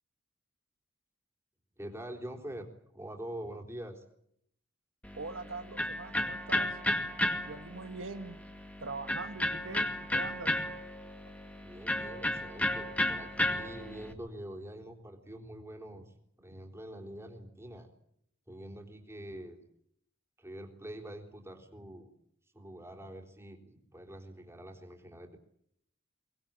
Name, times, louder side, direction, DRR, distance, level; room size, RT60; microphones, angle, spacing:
voice 1, 1.8-4.0 11.6-17.9 18.5-19.6 20.4-22.1 22.5-25.4, right 1 dB, 15° right, 3 dB, 3.9 m, -45 dB
Electric guitar, 5.0-14.1, left 1 dB, 5° left, 2.3 m, -34 dB
voice 2, 5.1-6.8 7.4-8.4 8.8-10.6, right 3 dB, 80° right, 9 dB, 1.3 m, -42 dB
24.0 x 20.0 x 8.9 m, 0.72 s
head